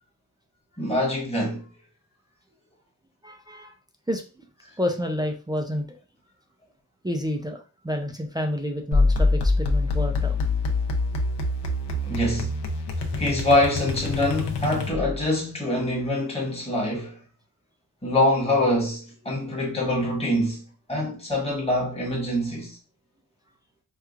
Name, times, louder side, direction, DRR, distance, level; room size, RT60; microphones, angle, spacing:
voice 1, 0.8-1.7 12.0-12.5 13.1-17.2 18.0-22.8, left 1 dB, 15° left, 1.1 m, -25 dB
voice 2, 3.2-3.7 4.1-4.5 4.8-5.9 7.0-10.3, equal, 10° right, 0.3 m, -29 dB
sound 1, 8.9-15.3, left 2 dB, 80° left, 0.7 m, -25 dB
4.5 x 2.3 x 2.4 m
wide cardioid pair, 155°, 40 cm